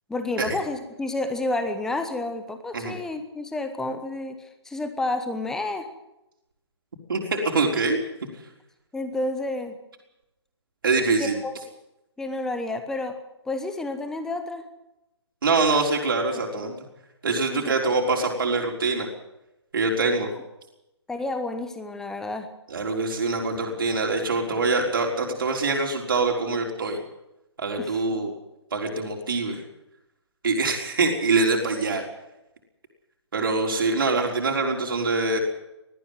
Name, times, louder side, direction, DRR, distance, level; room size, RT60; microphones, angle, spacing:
voice 1, 0.1-5.9 8.9-9.7 11.2-11.6 12.2-13.2 13.5-14.6 16.6-16.7 17.5-17.6 21.1-22.5 27.8-28.0, left 2 dB, 5° left, 8 dB, 1.2 m, -30 dB
voice 2, 7.1-8.0 10.8-11.4 15.4-16.8 17.2-19.1 19.7-20.3 22.7-27.0 27.6-28.3 28.7-29.6 30.4-32.0 33.3-35.4, right 3 dB, 50° right, 1 dB, 4.1 m, -24 dB
19.5 x 14.0 x 9.5 m, 0.92 s
figure-of-eight pair, 140°, 15 cm